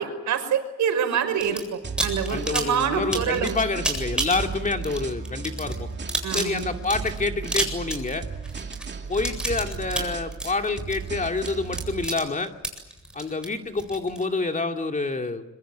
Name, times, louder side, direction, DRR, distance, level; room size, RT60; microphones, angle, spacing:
voice 1, 0.0-3.6 6.2-6.8, right 7 dB, 70° right, 8 dB, 5.6 m, -26 dB
sound 1, 1.4-1.6 2.0-14.2, right 1 dB, 5° right, 7.9 m, -30 dB
sound 2, 1.8-12.1, right 5 dB, 35° right, 2.7 m, -35 dB
voice 2, 2.3-5.9 6.3-8.3 9.1-12.5 13.1-15.4, left 3 dB, 25° left, 5 dB, 2.6 m, -27 dB
25.5 x 24.0 x 9.3 m, 1.0 s
cardioid pair, 90°, 30 cm